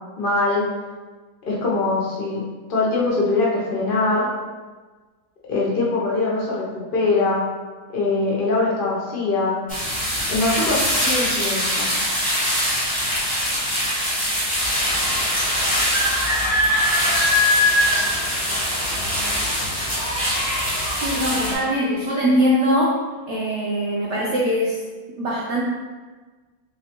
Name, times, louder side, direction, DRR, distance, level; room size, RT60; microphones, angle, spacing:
voice 1, 0.2-0.6 1.4-2.4 2.7-4.3 5.5-7.4 7.9-9.6 10.3-11.9, left 3 dB, 75° left, -4 dB, 0.4 m, -22 dB
sound 1, 9.7-21.5, left 1 dB, 10° left, 0.6 m, -22 dB
voice 2, 21.0-23.0 23.3-24.8 25.2-25.6, equal, 75° right, -4 dB, 0.6 m, -21 dB
3.2 x 3.1 x 2.8 m, 1.3 s
omnidirectional pair, 1.7 m